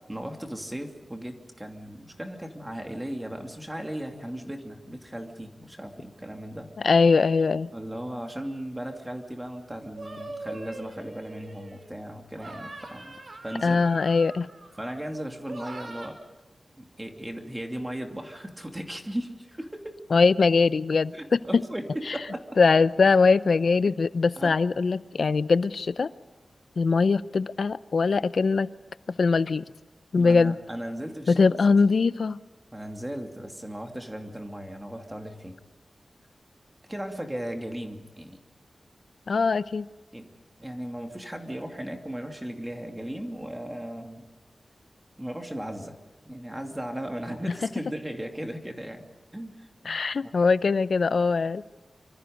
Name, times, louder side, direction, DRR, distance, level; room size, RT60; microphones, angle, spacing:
voice 1, 0.1-6.7 7.7-13.2 13.4-13.8 14.8-16.2 16.8-20.0 21.1-22.5 24.4-24.5 30.2-31.8 32.7-35.6 36.9-38.4 40.1-40.3 40.6-44.3 45.2-45.9 46.3-49.1 49.3-50.3, right 1 dB, 10° right, 3 dB, 2.7 m, -37 dB
voice 2, 6.8-7.7 13.6-14.5 20.1-21.6 22.6-26.1 26.8-28.7 29.1-29.6 30.1-30.6 31.3-32.4 39.3-39.9 49.9-51.6, left 4 dB, 65° left, 15 dB, 0.7 m, -22 dB
sound 1, 10.0-11.9 12.3-15.0 15.5-16.1, right 2 dB, 55° right, 4.1 m, -42 dB
26.0 x 25.5 x 5.3 m, 1.2 s
wide cardioid pair, 120°, 0 cm